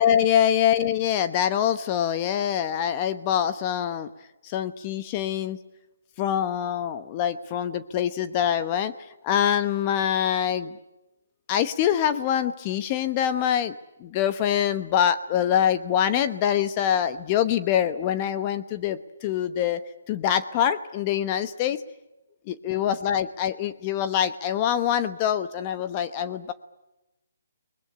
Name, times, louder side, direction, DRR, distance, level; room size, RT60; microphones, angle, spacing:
voice 1, 0.0-4.1 4.4-5.6 6.2-8.9 9.2-10.8 11.5-19.8 20.1-21.8 22.5-26.5, left 9 dB, 25° left, 11 dB, 1.0 m, -24 dB
23.0 x 20.5 x 9.9 m, 0.95 s
hypercardioid pair, 155°, 0 cm